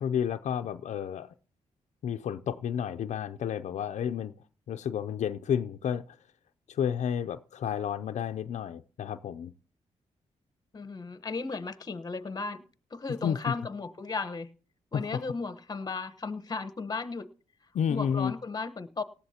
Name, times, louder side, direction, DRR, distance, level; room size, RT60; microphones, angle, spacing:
voice 1, 0.0-1.3 2.0-4.3 4.7-6.2 6.7-9.5 13.2-13.4 14.9-15.2 17.7-18.3, left 8 dB, 70° left, 0.5 m, -31 dB
voice 2, 10.7-12.6 12.9-14.5 14.9-17.3 17.9-19.0, left 4 dB, 30° left, 1.1 m, -35 dB
18.5 x 13.5 x 2.9 m
cardioid pair, 85°, 12 cm